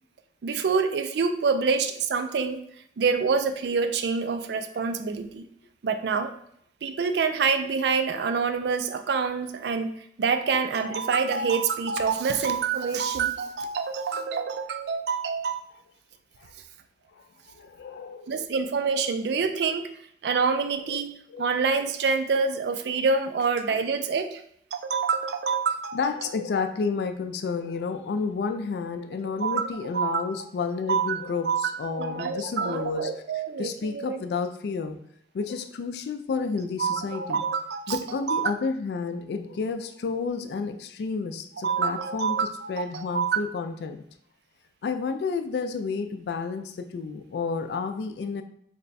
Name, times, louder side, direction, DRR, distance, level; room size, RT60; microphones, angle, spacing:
voice 1, 0.4-2.6 3.0-5.4 5.8-6.3 6.8-9.9 10.2-15.7 18.3-19.9 20.2-21.1 21.4-24.4 24.7-26.0 29.4-29.7 29.9-30.3 30.9-34.2 36.8-38.5 41.6-43.4, right 5 dB, 65° right, 8 dB, 0.3 m, -26 dB
voice 2, 17.1-18.5 20.9-21.0 21.3-21.5 25.9-33.1 33.6-35.0 35.3-37.5 37.9-42.4 42.7-44.0 44.8-48.4, left 5 dB, 65° left, 8 dB, 0.3 m, -31 dB
3.2 x 2.2 x 4.0 m, 0.68 s
head